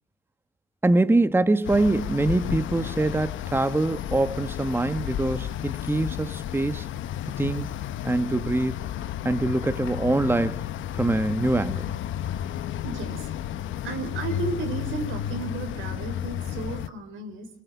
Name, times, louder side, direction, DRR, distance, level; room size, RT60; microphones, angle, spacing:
voice 1, 0.8-6.9 7.4-7.7 8.0-8.8 9.2-10.6 10.9-11.9, right 2 dB, 10° right, 1.1 m, -24 dB
sound 1, 1.6-16.9, left 11 dB, 80° left, 1.1 m, -32 dB
voice 2, 12.8-13.3 13.8-17.5, right 4 dB, 85° right, 4.8 m, -33 dB
25.0 x 21.5 x 8.3 m
cardioid pair, 90°, 20 cm